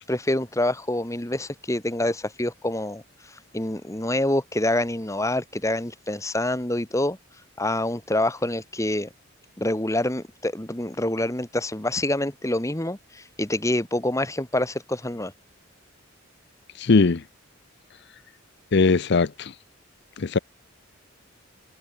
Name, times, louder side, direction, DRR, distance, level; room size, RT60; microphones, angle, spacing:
voice 1, 0.1-3.0 3.5-7.2 7.6-9.1 9.6-15.3, left 1 dB, 15° left, 1.7 m, -26 dB
voice 2, 16.8-17.2 18.7-19.5 20.2-20.4, left 4 dB, 55° left, 0.6 m, -20 dB
head